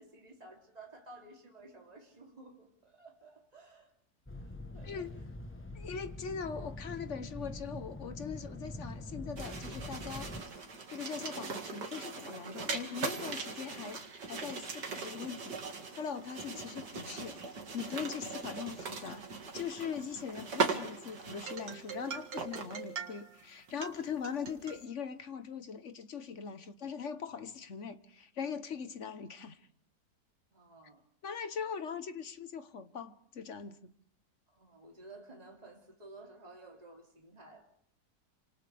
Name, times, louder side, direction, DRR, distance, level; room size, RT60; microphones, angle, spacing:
voice 1, 0.0-3.9 4.3-5.1 30.5-31.0 34.5-37.7, right 2 dB, 20° right, 3.2 m, -54 dB
sound 1, 4.3-10.4, left 1 dB, 10° left, 0.7 m, -44 dB
voice 2, 5.7-10.6 10.9-14.0 14.3-19.2 19.5-29.6 31.2-33.9, left 6 dB, 50° left, 1.2 m, -41 dB
sound 2, 9.4-23.4 23.7-24.8, right 4 dB, 80° right, 2.6 m, -40 dB
28.0 x 26.5 x 3.5 m
omnidirectional pair, 1.8 m